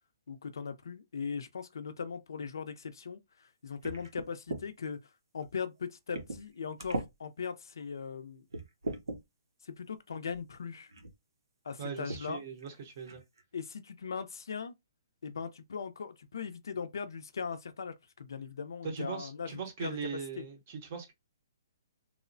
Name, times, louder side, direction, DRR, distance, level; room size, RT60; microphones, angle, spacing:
voice 1, 0.3-5.0 5.3-8.5 9.6-10.9 11.6-12.4 13.5-14.7 15.2-19.5 19.8-20.0 20.4-20.5, left 6 dB, 70° left, 0.5 m, -39 dB
sound 1, 3.8-4.7 5.4-5.5 6.1-6.5 6.8-7.1 7.8-7.9 8.5-9.2 10.3-10.4 10.9-11.2 12.1-12.3 12.6-12.7 13.1-13.4, right 2 dB, 85° right, 0.8 m, -38 dB
voice 2, 11.8-13.2 18.8-21.1, right 6 dB, 25° right, 0.6 m, -40 dB
3.0 x 2.0 x 2.5 m
hypercardioid pair, 180°, 2 cm